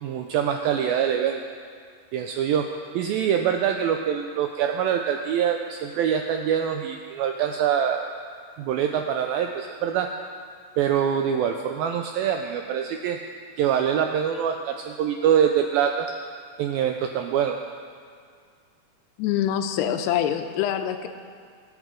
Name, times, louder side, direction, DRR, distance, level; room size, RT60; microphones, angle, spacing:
voice 1, 0.0-1.4 2.1-2.7 2.9-8.1 8.6-10.1 10.8-13.2 13.6-16.1 16.6-17.6, right 8 dB, 85° right, 4 dB, 2.1 m, -24 dB
voice 2, 19.2-21.1, left 10 dB, 90° left, 7 dB, 2.7 m, -25 dB
24.5 x 8.3 x 3.8 m, 2.1 s
omnidirectional pair, 4.8 m